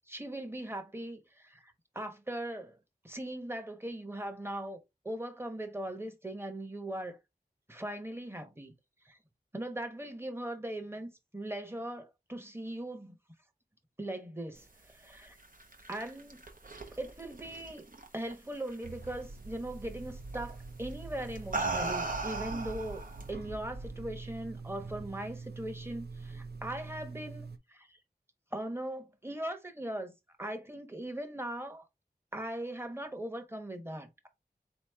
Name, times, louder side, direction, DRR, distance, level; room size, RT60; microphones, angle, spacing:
voice 1, 0.0-2.8 3.0-4.8 5.0-7.2 7.7-8.7 9.0-9.2 9.5-13.2 14.0-15.4 15.9-16.4 16.9-17.8 18.1-28.0 28.5-31.8 32.3-34.3, right 1 dB, 15° right, 1.1 m, -40 dB
sound 1, 15.4-18.3 18.7-19.1 20.3-20.6 21.2-23.3, right 3 dB, 60° right, 0.9 m, -37 dB
sound 2, 18.8-27.6, right 3 dB, 80° right, 0.6 m, -44 dB
4.1 x 3.1 x 3.4 m
wide cardioid pair, 55°, 16 cm